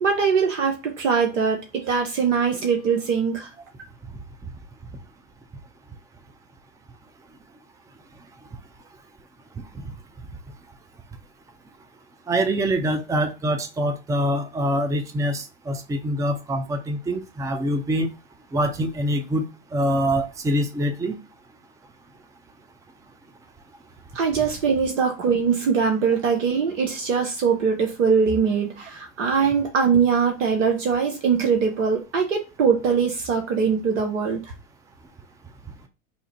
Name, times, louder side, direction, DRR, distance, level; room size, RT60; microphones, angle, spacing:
voice 1, 0.0-3.5 24.1-34.4, right 6 dB, 75° right, 0.9 m, -22 dB
voice 2, 12.3-18.1 18.5-19.4 19.7-21.2, equal, 10° right, 0.5 m, -24 dB
2.7 x 2.5 x 4.2 m
hypercardioid pair, 90°, 37 cm